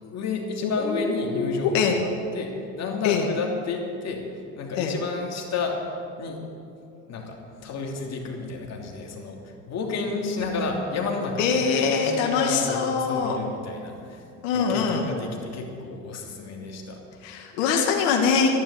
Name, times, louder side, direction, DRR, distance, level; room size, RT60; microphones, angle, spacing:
voice 1, 0.0-4.3 4.5-5.9 6.2-6.4 7.1-14.2 14.5-17.4, left 3 dB, 45° left, 1 dB, 3.0 m, -31 dB
voice 2, 0.6-2.0 3.0-3.3 4.8-4.9 11.4-13.4 14.4-15.1 17.2-18.5, left 6 dB, 85° left, 2 dB, 1.8 m, -23 dB
12.0 x 11.0 x 8.5 m, 2.6 s
supercardioid pair, 95°, 37 cm